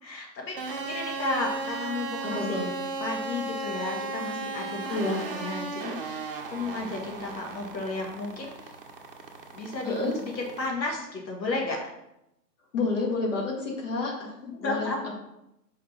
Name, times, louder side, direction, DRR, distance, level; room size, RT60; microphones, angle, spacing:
voice 1, 0.0-2.6 3.0-8.7 9.5-11.9 14.4-15.1, left 2 dB, 90° left, 0 dB, 1.7 m, -33 dB
sound 1, 0.6-10.7, right 3 dB, 35° right, 0.7 m, -36 dB
voice 2, 2.2-2.7 4.9-5.2 9.8-10.1 12.7-14.3 14.6-14.9, left 3 dB, 45° left, -2 dB, 2.1 m, -29 dB
5.0 x 4.2 x 5.8 m, 0.86 s
hypercardioid pair, 165°, 50 cm